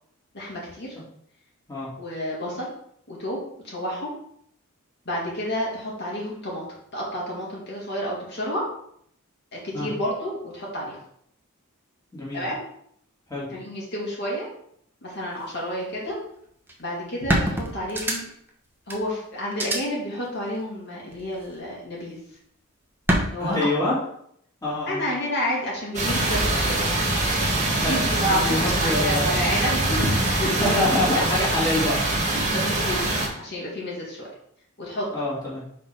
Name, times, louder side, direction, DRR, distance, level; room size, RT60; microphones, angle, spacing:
voice 1, 0.3-1.0 2.0-2.7 3.1-4.1 5.1-6.6 6.9-8.6 9.5-11.0 12.3-12.6 13.5-14.5 15.0-16.2 16.8-18.2 18.9-22.2 23.2-23.6 24.9-26.8 27.8-31.4 32.1-33.1 33.4-34.3 34.8-35.1, equal, 55° left, -5 dB, 2.3 m, -30 dB
voice 2, 12.1-12.4 13.3-13.5 23.4-23.9 24.6-25.0 27.7-28.0 28.4-29.5 30.6-32.0 32.3-32.5 35.1-35.6, left 2 dB, 15° left, -8 dB, 2.4 m, -26 dB
sound 1, 16.7-16.8 17.3-18.5 18.9-19.0 19.5-19.8 21.1-21.6 23.1-23.2, right 1 dB, 10° right, 1.0 m, -24 dB
sound 2, 25.9-33.3, right 2 dB, 35° right, 1.6 m, -24 dB
4.9 x 4.5 x 5.4 m, 0.69 s
head